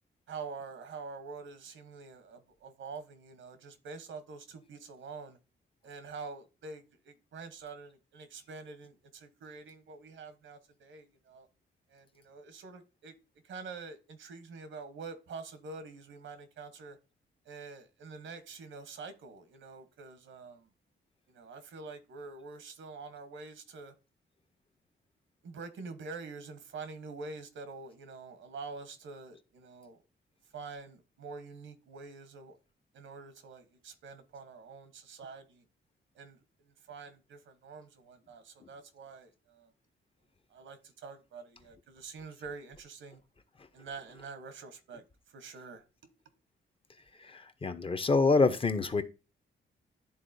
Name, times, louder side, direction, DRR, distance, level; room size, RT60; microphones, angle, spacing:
voice 1, 0.3-5.4 5.8-11.5 11.9-13.1 13.4-17.0 17.5-20.7 21.3-23.9 25.4-30.0 30.5-32.6 32.9-35.6 36.1-39.7 40.5-43.2 43.7-45.8, right 4 dB, 85° right, 1.0 m, -46 dB
voice 2, 47.2-49.0, left 3 dB, 30° left, 0.6 m, -26 dB
11.0 x 3.8 x 2.6 m
cardioid pair, 120°, 19 cm